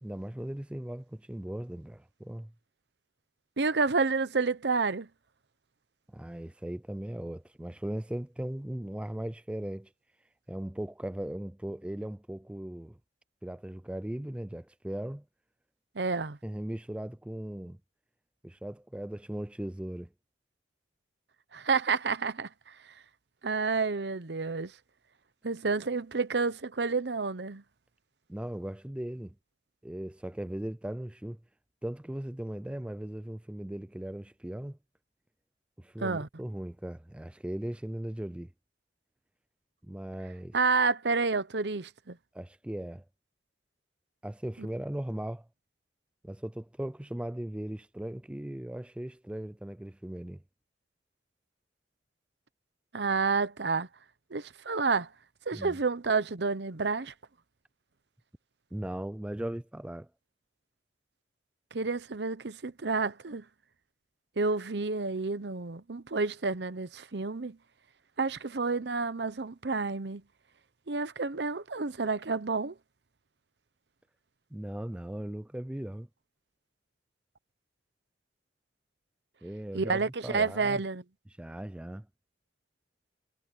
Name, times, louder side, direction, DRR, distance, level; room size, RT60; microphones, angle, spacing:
voice 1, 0.0-2.5 6.1-9.9 10.5-13.0 13.4-15.2 16.4-17.8 18.4-20.1 28.3-29.3 29.8-31.4 31.8-34.8 35.8-38.5 39.8-40.5 42.3-43.0 44.2-45.5 46.2-50.4 55.5-55.8 58.7-60.1 74.5-76.1 79.4-80.8 81.4-82.1, right 1 dB, 5° right, 0.3 m, -38 dB
voice 2, 3.6-5.1 15.9-16.4 21.5-22.7 23.4-24.7 25.4-27.6 36.0-36.3 40.5-42.2 44.6-44.7 52.9-53.9 54.3-55.1 55.5-57.1 61.7-63.4 64.4-67.6 68.2-70.2 70.9-72.7 79.7-81.0, right 4 dB, 70° right, 0.9 m, -29 dB
head